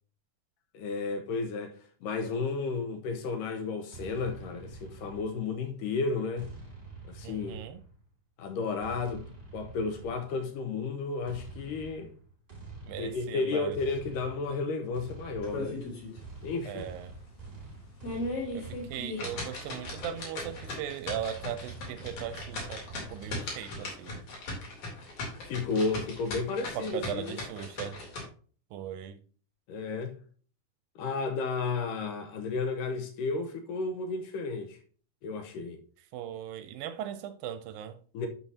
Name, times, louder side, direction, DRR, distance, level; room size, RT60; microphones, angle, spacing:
voice 1, 0.7-6.5 7.1-7.6 8.4-9.2 9.5-12.1 13.0-15.8 16.4-16.9 25.5-27.4 29.7-30.2 31.0-34.8 35.2-35.8 38.1-38.3, left 4 dB, 75° left, 2.2 m, -33 dB
sound 1, 3.9-5.7 6.4-8.1 8.8-10.5 11.3-23.5, right 3 dB, 20° right, 2.2 m, -47 dB
voice 2, 7.2-7.8 12.8-13.8 16.7-17.1 18.5-22.9 23.1-24.2 26.7-28.0 28.7-29.2 36.1-38.0, right 10 dB, 80° right, 2.2 m, -38 dB
sound 2, 15.4-16.2 16.6-16.7 17.2-17.3 17.8-28.2, left 2 dB, 50° left, 3.8 m, -38 dB
11.0 x 5.7 x 2.7 m
omnidirectional pair, 4.3 m